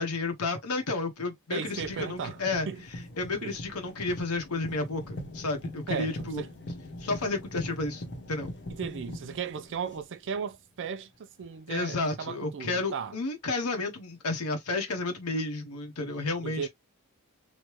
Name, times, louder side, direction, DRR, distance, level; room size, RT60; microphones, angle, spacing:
voice 1, 0.0-2.7 3.2-6.4 7.0-8.5 11.7-16.7, left 3 dB, 75° left, 0.9 m, -31 dB
voice 2, 1.5-2.4 2.7-2.8 3.4-3.6 5.9-6.5 8.7-13.2 16.4-16.7, right 6 dB, 55° right, 0.4 m, -36 dB
sound 1, 1.7-10.5 11.4-11.5, left 1 dB, 50° left, 1.0 m, -42 dB
3.2 x 2.2 x 3.0 m
head